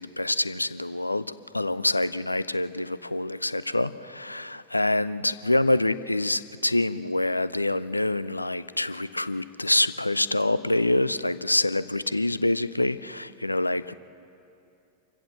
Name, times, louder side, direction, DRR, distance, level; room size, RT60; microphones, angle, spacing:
voice 1, 0.0-13.9, left 2 dB, 85° left, 16 dB, 0.5 m, -26 dB
26.5 x 15.5 x 7.6 m, 2.6 s
figure-of-eight pair, 90°, 0 cm